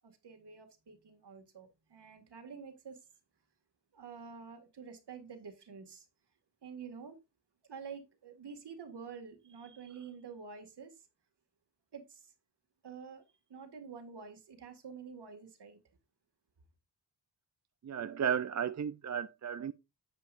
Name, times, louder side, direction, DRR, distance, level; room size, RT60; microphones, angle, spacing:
voice 1, 0.0-3.1 3.9-6.1 6.6-7.2 7.6-11.1 11.9-12.3 12.8-13.2 13.5-15.8, right 6 dB, 65° right, 2.1 m, -48 dB
voice 2, 17.8-19.7, right 8 dB, 40° right, 0.5 m, -34 dB
9.9 x 6.9 x 2.6 m
cardioid pair, 75°, 44 cm